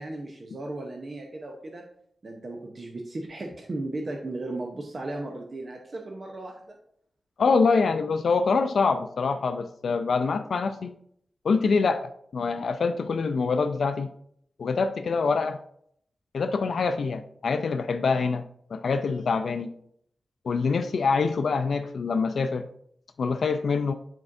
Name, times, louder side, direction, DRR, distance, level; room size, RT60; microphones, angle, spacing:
voice 1, 0.0-1.8 2.2-6.8, right 2 dB, 45° right, 1 dB, 0.8 m, -36 dB
voice 2, 7.4-10.9 11.4-14.1 14.6-15.6 16.3-18.4 18.7-19.7 20.4-22.7 23.2-23.9, left 4 dB, 80° left, 8 dB, 0.3 m, -25 dB
8.5 x 4.4 x 2.6 m, 0.69 s
wide cardioid pair, 110°, 0 cm